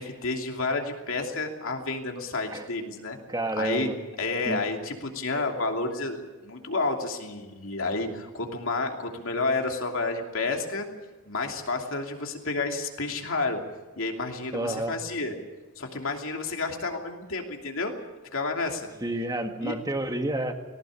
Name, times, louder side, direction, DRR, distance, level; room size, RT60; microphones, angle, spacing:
voice 1, 0.0-3.2 3.6-3.9 4.2-10.9 11.2-13.6 14.0-15.3 15.8-17.9 18.3-18.9 19.6-19.7, left 3 dB, 65° left, 2 dB, 2.9 m, -30 dB
voice 2, 3.3-4.0 4.5-4.6 14.5-15.0 19.0-20.5, right 1 dB, 15° right, 5 dB, 1.7 m, -29 dB
19.0 x 18.0 x 8.6 m, 1.2 s
head